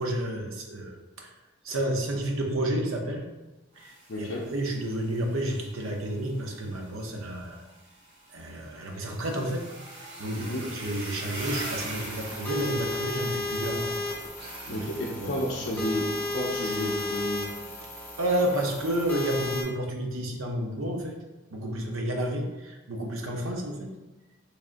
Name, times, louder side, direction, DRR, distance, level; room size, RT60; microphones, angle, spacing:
voice 1, 0.0-1.3 1.6-3.3 3.8-7.6 8.3-9.7 10.0-14.0 14.7-14.8 15.2-15.4 18.2-21.2 21.5-24.0, right 1 dB, 90° right, 2 dB, 0.6 m, -31 dB
sound 1, 3.7-13.8 14.4-15.8 16.6-17.8, right 1 dB, 55° right, 1.1 m, -44 dB
voice 2, 4.1-4.4 10.4-10.6 14.7-16.0 16.3-17.4, left 1 dB, 60° left, -6 dB, 0.5 m, -31 dB
sound 2, 11.3-19.6, left 2 dB, 10° left, 0.5 m, -34 dB
3.6 x 3.3 x 2.5 m, 1.1 s
head